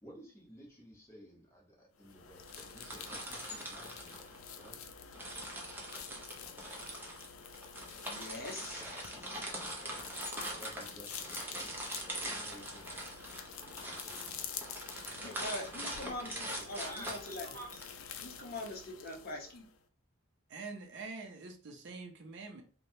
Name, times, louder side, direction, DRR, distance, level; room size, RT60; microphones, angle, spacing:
voice 1, 0.0-4.8 8.5-10.1 10.4-13.4 13.6-14.8 15.2-15.8 16.2-17.9, equal, 15° left, -3 dB, 1.0 m, -54 dB
sound 1, 2.0-19.8, left 7 dB, 90° left, 0.4 m, -48 dB
sound 2, 2.5-4.7 5.1-17.8, right 1 dB, 10° right, 0.6 m, -42 dB
voice 2, 8.0-8.8 15.2-17.5 18.2-19.7, left 1 dB, 50° left, 1 dB, 0.7 m, -42 dB
voice 3, 20.5-22.6, right 3 dB, 60° right, 4 dB, 0.5 m, -45 dB
3.1 x 2.2 x 2.7 m, 0.39 s
head